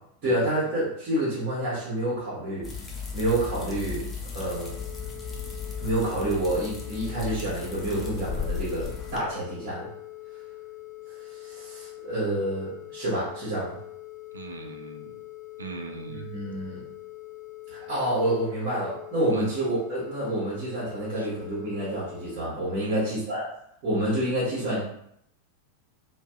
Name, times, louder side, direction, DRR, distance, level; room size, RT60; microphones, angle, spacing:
voice 1, 0.2-2.7 3.1-4.0 4.3-4.8 5.8-9.9 11.3-13.8 16.1-16.8 17.7-23.4 23.8-24.9, right 1 dB, 40° right, -8 dB, 1.0 m, -28 dB
sound 1, 2.6-9.2, left 6 dB, 20° left, 0.5 m, -35 dB
sound 2, 4.5-22.4, left 18 dB, 40° left, 0.8 m, -43 dB
voice 2, 14.3-15.2 15.6-16.3 19.3-19.5 21.2-21.3 22.8-23.0, right 3 dB, 75° right, 3 dB, 0.4 m, -39 dB
2.6 x 2.3 x 2.3 m, 0.72 s
figure-of-eight pair, 90°, 0 cm